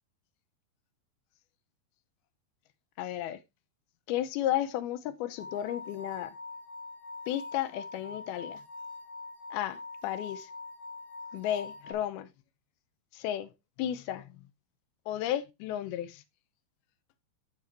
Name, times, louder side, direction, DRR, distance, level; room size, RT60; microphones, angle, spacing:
voice 1, 3.0-3.4 4.1-6.3 7.3-8.6 9.5-10.5 11.3-12.3 13.1-13.5 13.8-14.4 15.1-16.2, left 12 dB, 85° left, 2.7 m, -33 dB
sound 1, 5.4-11.9, left 3 dB, 45° left, 3.2 m, -44 dB
13.0 x 5.0 x 2.9 m
omnidirectional pair, 4.3 m